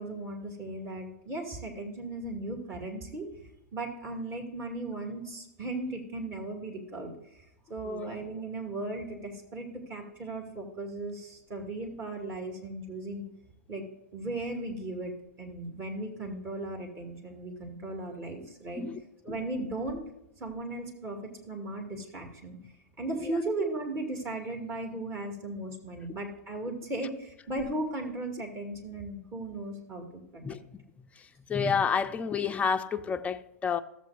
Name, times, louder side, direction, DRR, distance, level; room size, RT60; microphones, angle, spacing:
voice 1, 0.0-3.3 3.7-7.4 7.7-13.2 13.7-13.9 14.1-15.1 15.4-18.8 19.2-20.0 20.4-22.6 23.0-30.4, right 2 dB, 30° right, 2.1 m, -36 dB
voice 2, 30.4-30.8 31.2-33.8, left 6 dB, 15° left, 0.4 m, -30 dB
14.0 x 7.5 x 2.5 m
hypercardioid pair, 110°, 9 cm